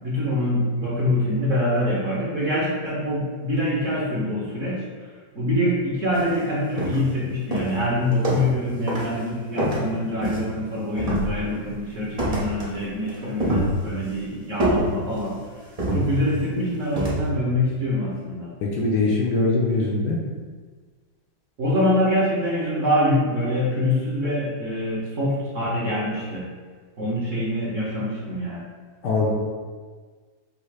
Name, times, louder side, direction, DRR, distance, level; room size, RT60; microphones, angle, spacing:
voice 1, 0.0-4.8 5.3-15.4 15.9-18.5 21.6-26.4 27.0-28.6, left 1 dB, 50° right, -7 dB, 1.0 m, -25 dB
sound 1, 6.1-6.3 6.8-7.2 7.5-8.6 8.9-9.2 9.6-10.6 11.0-11.7 12.2-12.8 13.1-14.1 14.6-15.3 15.8-16.5 17.0-17.3, right 1 dB, 75° right, 0.3 m, -26 dB
voice 2, 18.6-20.2 29.0-29.3, left 3 dB, 70° left, -2 dB, 1.2 m, -22 dB
5.4 x 2.0 x 4.8 m, 1.5 s
omnidirectional pair, 2.2 m